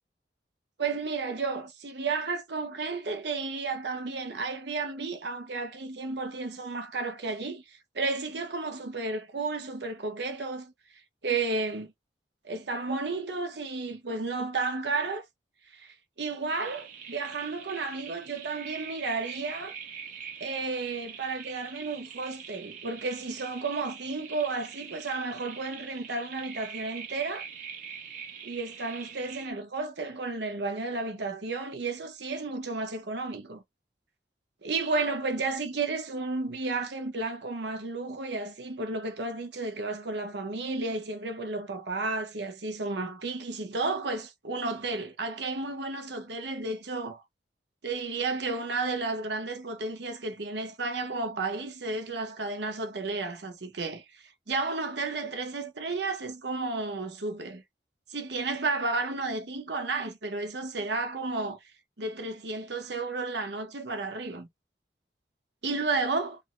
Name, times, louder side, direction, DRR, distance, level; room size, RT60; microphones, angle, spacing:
voice 1, 0.8-10.7 11.2-11.9 12.4-15.2 15.7-19.7 20.4-27.5 28.4-33.6 34.6-47.2 47.8-57.6 58.1-61.6 62.0-64.5 65.6-66.4, right 3 dB, 75° right, 0.9 m, -32 dB
sound 1, 16.5-29.5, right 7 dB, 45° right, 1.0 m, -44 dB
3.4 x 2.1 x 2.5 m
head